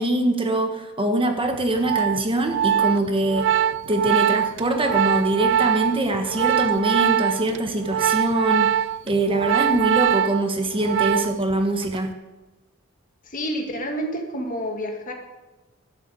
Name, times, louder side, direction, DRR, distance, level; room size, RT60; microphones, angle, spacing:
voice 1, 0.0-3.6 3.9-8.8 9.1-12.1, right 1 dB, 25° right, 5 dB, 1.3 m, -23 dB
Organ, 1.5-11.5 11.8-12.1, right 9 dB, 55° right, 0.3 m, -23 dB
voice 2, 13.2-15.1, equal, 40° left, 3 dB, 2.0 m, -29 dB
12.0 x 7.8 x 8.3 m, 1.1 s
head